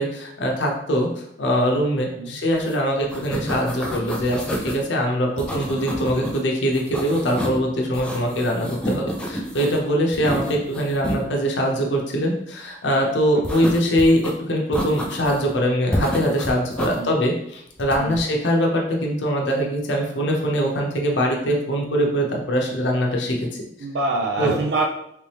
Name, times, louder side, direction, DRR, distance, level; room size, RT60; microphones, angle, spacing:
voice 1, 0.0-23.7 24.4-24.5, equal, 80° left, 0 dB, 0.7 m, -22 dB
sound 1, 2.6-2.7 3.0-4.8 5.4-6.4 6.7-7.6 7.9-9.8 10.1-11.2 13.4-14.3 14.7-15.5 15.9-17.0 17.8-18.2, equal, 5° left, 0.4 m, -29 dB
voice 2, 23.8-24.9, right 2 dB, 65° right, 1 dB, 0.4 m, -26 dB
3.3 x 2.9 x 3.2 m, 0.75 s
head